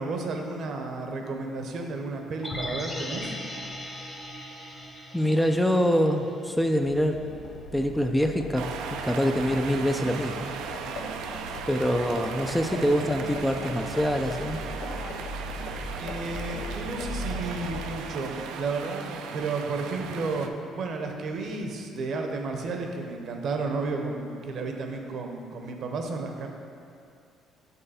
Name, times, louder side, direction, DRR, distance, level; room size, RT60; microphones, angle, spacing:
voice 1, 0.0-3.3 15.9-20.5 20.7-26.5, right 3 dB, 60° right, 3 dB, 0.8 m, -32 dB
sound 1, 2.4-6.6 6.9-7.0, left 1 dB, 20° left, 1.0 m, -38 dB
voice 2, 5.1-7.2 7.7-10.5 11.7-14.6, equal, 5° left, 5 dB, 0.4 m, -25 dB
Livestock farm animals working animals, 6.6-18.2, left 2 dB, 80° left, 0.6 m, -39 dB
sound 2, 8.6-20.5, right 6 dB, 85° right, 0.4 m, -37 dB
6.7 x 5.5 x 4.2 m, 2.4 s
cardioid pair, 100°, 0 cm